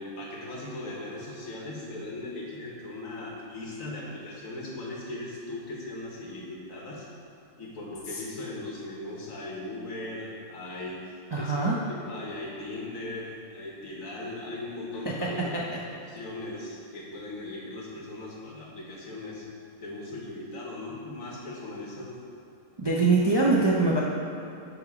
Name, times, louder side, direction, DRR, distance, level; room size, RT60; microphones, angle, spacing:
voice 1, 0.0-7.1 7.6-11.0 11.3-19.5 19.8-22.2, left 2 dB, 65° left, -3 dB, 1.6 m, -38 dB
voice 2, 11.3-11.8 15.5-15.6 22.8-24.0, right 3 dB, 30° right, -4 dB, 0.4 m, -23 dB
9.9 x 3.5 x 4.8 m, 2.8 s
omnidirectional pair, 1.5 m